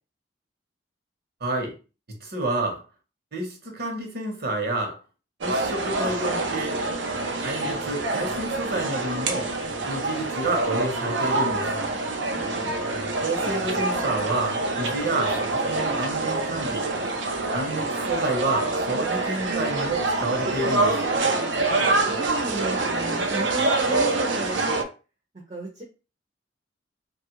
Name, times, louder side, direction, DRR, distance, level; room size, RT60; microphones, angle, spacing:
voice 1, 1.4-1.7 2.1-2.8 3.3-5.0 5.4-6.8 7.4-9.5 9.9-11.7 13.2-16.9 17.5-21.0, right 2 dB, 60° right, 2 dB, 0.9 m, -29 dB
sound 1, 5.4-24.8, right 2 dB, 90° right, 0.5 m, -26 dB
voice 2, 12.2-13.2 22.0-24.9 25.5-25.8, right 2 dB, 40° right, -2 dB, 0.6 m, -35 dB
3.0 x 2.4 x 3.0 m, 0.33 s
head